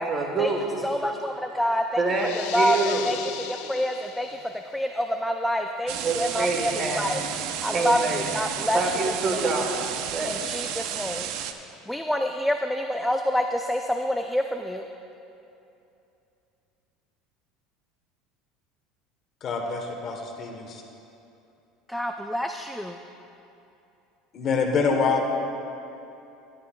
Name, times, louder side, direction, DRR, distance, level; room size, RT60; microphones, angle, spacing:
voice 1, 0.0-0.8 2.0-3.1 6.0-7.1 7.7-8.3 8.7-10.5, right 3 dB, 30° right, 2 dB, 1.2 m, -27 dB
voice 2, 0.8-2.0 2.3-7.2 7.6-8.9 9.3-9.5 10.2-11.3 11.9-14.8 21.9-23.0, equal, ahead, 4 dB, 0.3 m, -27 dB
sound 1, 2.1-4.6, left 10 dB, 75° left, 0.5 m, -37 dB
sound 2, 5.9-11.5, right 9 dB, 65° right, 0.5 m, -32 dB
voice 3, 19.4-20.8 24.3-25.3, left 4 dB, 40° left, 3 dB, 1.0 m, -26 dB
14.0 x 10.5 x 2.3 m, 2.8 s
cardioid pair, 135°, 0 cm